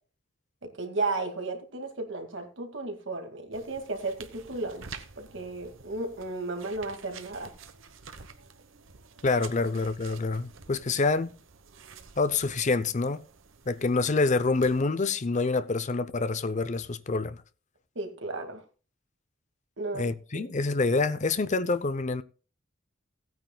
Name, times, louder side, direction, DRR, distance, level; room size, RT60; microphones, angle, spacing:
voice 1, 0.6-7.5 18.0-18.6 19.8-20.5, right 3 dB, 65° right, 2.1 m, -34 dB
sound 1, 3.5-14.8, right 5 dB, 85° right, 1.0 m, -49 dB
voice 2, 9.2-11.3 12.2-13.2 13.7-17.4 19.9-22.2, left 3 dB, 40° left, 0.6 m, -27 dB
16.5 x 9.3 x 2.3 m
head